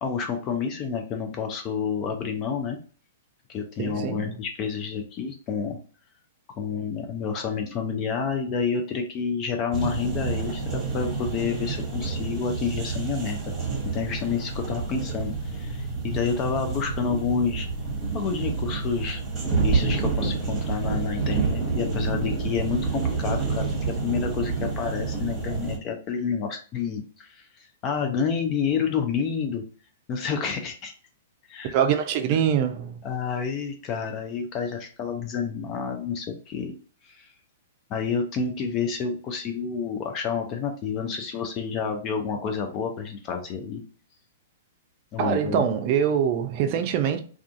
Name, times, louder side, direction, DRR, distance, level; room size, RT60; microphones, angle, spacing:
voice 1, 0.0-2.8 3.5-5.8 6.6-13.6 13.8-17.7 18.1-19.2 19.6-29.6 30.1-30.9 31.5-31.8 32.3-32.4 33.0-36.8 37.0-37.3 37.9-43.8 45.1-45.7, left 6 dB, 35° left, 0.4 m, -29 dB
voice 2, 3.8-4.3 31.7-33.0 45.2-47.2, right 8 dB, 45° right, 0.4 m, -24 dB
sound 1, 9.7-25.8, right 4 dB, 25° right, 1.0 m, -28 dB
2.4 x 2.4 x 2.5 m
hypercardioid pair, 115°, 0 cm